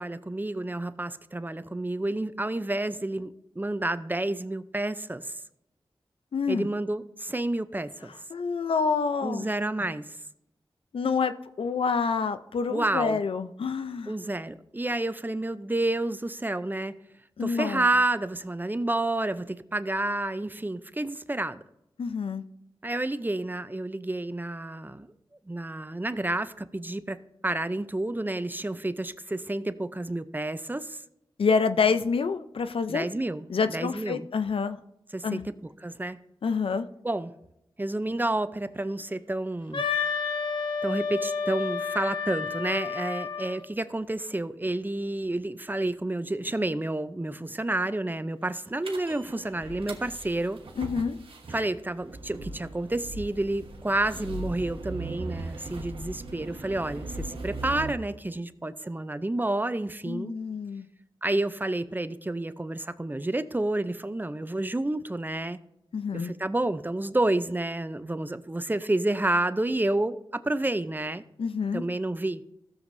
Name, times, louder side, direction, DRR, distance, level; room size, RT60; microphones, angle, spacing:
voice 1, 0.0-5.3 6.5-8.1 9.2-10.2 12.7-13.2 14.1-16.9 17.4-21.6 22.8-25.1 25.5-27.2 27.4-31.0 32.9-34.3 35.1-35.5 35.8-36.2 37.0-37.3 37.8-39.8 40.8-50.6 51.5-60.4 61.2-65.6 66.1-71.2 71.7-72.4, right 2 dB, 20° right, 13 dB, 0.5 m, -30 dB
voice 2, 6.3-6.7 8.3-9.5 10.9-14.1 17.4-17.9 22.0-22.4 31.4-33.1 33.5-34.8 35.2-35.5 36.4-36.9 50.8-51.2 60.1-60.9 65.9-66.3 71.4-71.8, left 5 dB, 80° left, 11 dB, 0.5 m, -27 dB
Wind instrument woodwind instrument, 39.7-43.6, left 5 dB, 65° left, 1.1 m, -30 dB
sound 1, 48.8-57.9, right 2 dB, 80° right, 1.2 m, -39 dB
15.0 x 7.1 x 2.6 m, 0.83 s
cardioid pair, 50°, 9 cm